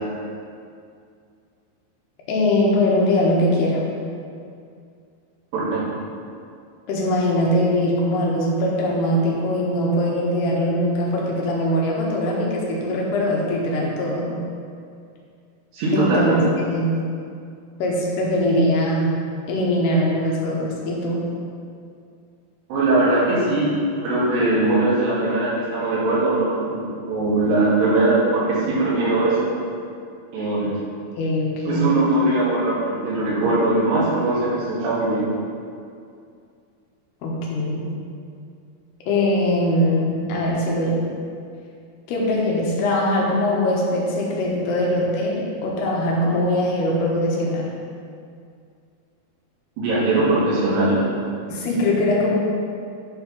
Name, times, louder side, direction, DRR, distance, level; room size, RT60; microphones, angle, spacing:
voice 1, 2.3-3.8 6.9-14.4 15.9-17.0 17.8-19.2 19.5-21.2 31.2-31.9 37.2-37.9 39.1-41.1 42.1-47.7 51.5-52.4, left 1 dB, 85° left, -3 dB, 3.4 m, -21 dB
voice 2, 5.5-5.8 15.7-16.4 22.7-23.7 24.0-29.5 30.3-30.7 31.7-35.3 49.8-51.0, right 2 dB, 85° right, -9 dB, 4.4 m, -20 dB
10.0 x 4.6 x 5.5 m, 2.4 s
omnidirectional pair, 4.6 m